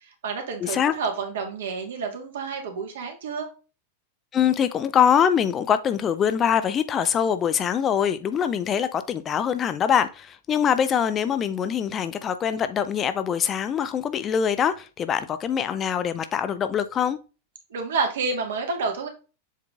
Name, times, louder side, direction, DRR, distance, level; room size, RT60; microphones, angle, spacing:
voice 1, 0.0-3.5 17.7-19.1, right 4 dB, 60° right, 1.8 m, -29 dB
voice 2, 0.6-0.9 4.3-17.2, left 8 dB, 25° left, 0.5 m, -23 dB
7.3 x 3.8 x 3.6 m
figure-of-eight pair, 90°, 0 cm